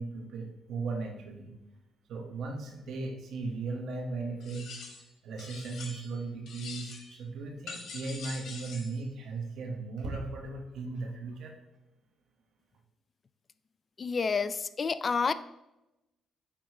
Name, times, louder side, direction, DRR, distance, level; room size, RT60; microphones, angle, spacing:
voice 1, 0.0-1.5 2.1-4.7 5.2-11.6, right 3 dB, 75° right, 3 dB, 1.3 m, -37 dB
sound 1, 4.4-5.1 5.4-6.2 6.5-7.2 7.7-9.0, left 4 dB, 65° left, 1.5 m, -44 dB
voice 2, 14.0-15.3, left 5 dB, 40° left, 14 dB, 0.3 m, -29 dB
8.7 x 3.1 x 4.8 m, 0.93 s
cardioid pair, 90°, 0 cm